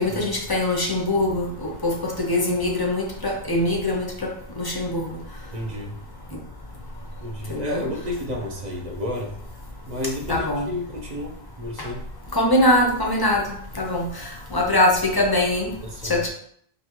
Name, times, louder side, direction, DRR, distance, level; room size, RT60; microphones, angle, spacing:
voice 1, 0.0-4.3 4.6-5.1 7.5-7.9 10.3-10.7 11.8-11.9 12.3-15.7 16.0-16.3, left 1 dB, 30° left, 0 dB, 0.4 m, -23 dB
voice 2, 5.5-6.0 7.2-9.4 9.9-12.0 15.8-16.2, left 1 dB, 40° right, -1 dB, 0.8 m, -31 dB
5.2 x 2.6 x 3.0 m, 0.64 s
omnidirectional pair, 1.3 m